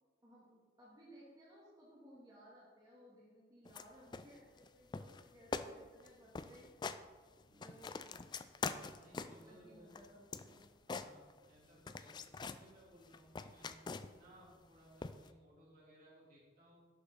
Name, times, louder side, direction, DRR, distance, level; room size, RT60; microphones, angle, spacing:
voice 1, 0.2-6.7 7.5-8.1 9.4-10.6, equal, 20° right, -8 dB, 2.0 m, -60 dB
sound 1, 3.7-3.9 4.1-4.7 4.9-5.2 5.5-5.7 6.0-6.1 6.3-7.0 7.4-9.5 9.9-11.6 11.9-12.6 13.0-14.3 15.0-15.3, left 4 dB, 25° left, 0.3 m, -44 dB
voice 2, 7.4-7.9 9.0-10.0 10.9-13.8 14.1-16.8, right 1 dB, 50° right, -6 dB, 3.3 m, -62 dB
11.0 x 6.9 x 4.0 m, 1.5 s
head